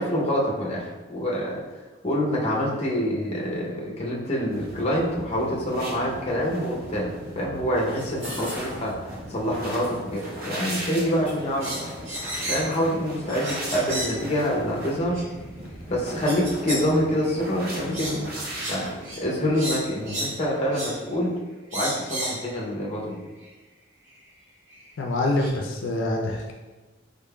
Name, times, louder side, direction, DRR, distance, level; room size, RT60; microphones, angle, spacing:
voice 1, 0.0-1.6 2.0-7.1 7.4-8.9 9.3-11.7 12.5-15.2 15.9-18.3 18.7-21.3 21.7-23.2, equal, 30° left, -3 dB, 0.6 m, -26 dB
sound 1, 4.5-21.2, right 1 dB, 45° right, 0.7 m, -38 dB
sound 2, 7.9-13.0, equal, 25° right, 1.3 m, -46 dB
sound 3, 11.6-12.8 13.3-14.2 15.1-15.2 16.3-16.9 17.2-17.4 17.9-18.2 18.5-18.8 19.0-19.2 19.5-20.4 20.7-21.0 21.7-22.4 23.4-23.5 24.7-24.8 25.4-25.5, right 1 dB, 80° right, 1.4 m, -32 dB
voice 2, 25.0-26.5, left 2 dB, 75° left, 0 dB, 0.4 m, -26 dB
3.7 x 3.5 x 2.2 m, 1.2 s
head